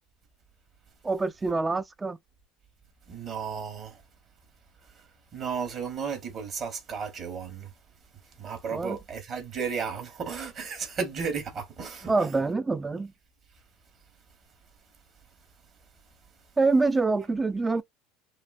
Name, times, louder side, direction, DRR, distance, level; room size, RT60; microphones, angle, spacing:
voice 1, 1.0-2.2 8.7-9.0 12.1-13.1 16.6-17.8, right 3 dB, 20° right, 0.4 m, -25 dB
voice 2, 3.1-3.9 5.3-7.7 8.4-12.1, right 6 dB, 40° right, 1.7 m, -34 dB
3.0 x 2.7 x 2.5 m
hypercardioid pair, 85°, 0 cm